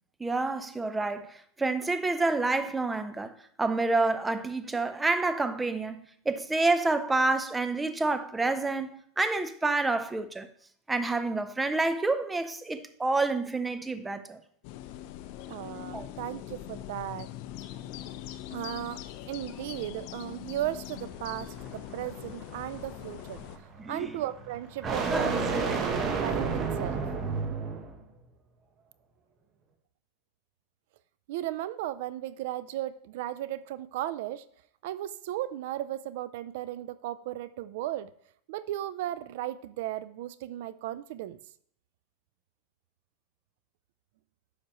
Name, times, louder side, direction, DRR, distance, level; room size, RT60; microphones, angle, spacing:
voice 1, 0.2-10.5 10.9-14.4 15.9-16.1 23.8-24.2 24.8-25.8, right 3 dB, 10° right, 0.5 m, -28 dB
sound 1, 14.6-23.6, left 13 dB, 60° left, 0.5 m, -42 dB
voice 2, 15.5-17.3 18.5-19.0 19.3-23.4 23.9-25.8 26.2-27.0 31.3-34.4 34.8-38.1 38.5-41.4, right 13 dB, 70° right, 0.3 m, -36 dB
sound 2, 21.0-28.0, right 4 dB, 35° right, 1.2 m, -32 dB
9.8 x 6.4 x 3.0 m
supercardioid pair, 135°, 0 cm